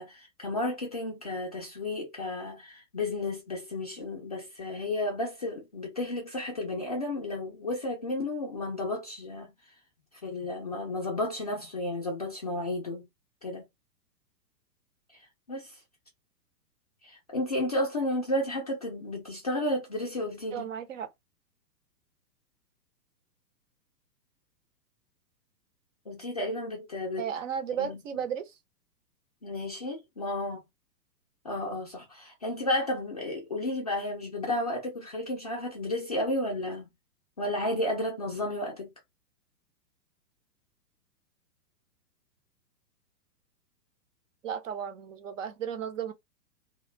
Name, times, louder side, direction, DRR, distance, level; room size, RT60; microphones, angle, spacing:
voice 1, 0.0-9.5 10.2-13.1 13.4-13.6 15.1-15.2 15.5-15.8 17.0-20.7 26.1-27.3 27.8-28.0 29.4-30.6 31.4-36.9 37.4-38.9, left 1 dB, 25° left, 0.3 m, -32 dB
voice 2, 20.5-21.1 27.2-28.5 44.4-46.1, right 8 dB, 50° right, 0.6 m, -34 dB
2.3 x 2.2 x 3.0 m
figure-of-eight pair, 115°, 50 cm